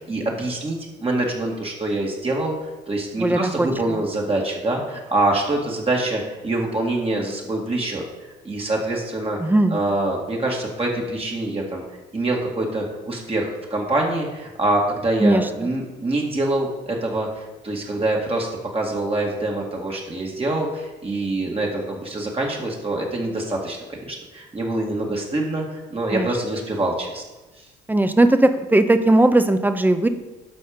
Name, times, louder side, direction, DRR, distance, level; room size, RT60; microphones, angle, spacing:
voice 1, 0.1-8.0 8.4-9.4 9.7-11.8 12.1-23.8 24.1-27.2 27.6-27.7, right 2 dB, 30° right, -1 dB, 2.0 m, -25 dB
voice 2, 3.2-4.0 9.4-9.8 15.2-15.7 26.1-26.3 27.9-30.1, right 1 dB, 10° right, 9 dB, 0.9 m, -18 dB
12.0 x 4.3 x 5.2 m, 1.1 s
supercardioid pair, 75°, 20 cm